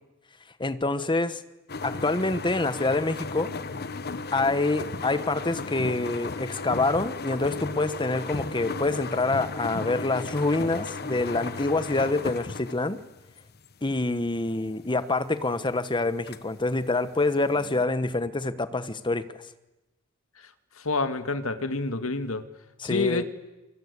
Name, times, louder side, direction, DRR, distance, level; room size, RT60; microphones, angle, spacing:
voice 1, 0.6-1.4 1.8-3.5 4.3-13.0 13.8-19.4 22.8-23.2, left 2 dB, 25° left, 1.2 m, -26 dB
sound 1, 1.7-17.8, left 3 dB, 50° left, 1.2 m, -36 dB
voice 2, 20.8-22.5 22.8-23.2, left 3 dB, 80° left, 1.8 m, -28 dB
28.5 x 24.0 x 8.3 m
head